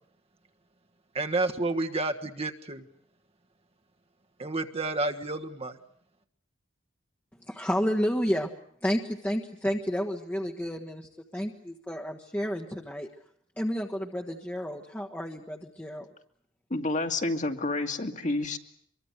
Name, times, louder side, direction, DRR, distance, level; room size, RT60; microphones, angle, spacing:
voice 1, 1.1-2.8 4.4-5.8, right 2 dB, 30° right, 5 dB, 1.5 m, -30 dB
voice 2, 7.5-8.5 8.8-13.1 13.6-16.1, equal, 10° left, 1 dB, 1.4 m, -31 dB
voice 3, 16.7-18.6, left 2 dB, 40° left, 5 dB, 2.2 m, -29 dB
24.5 x 23.0 x 8.1 m, 0.64 s
head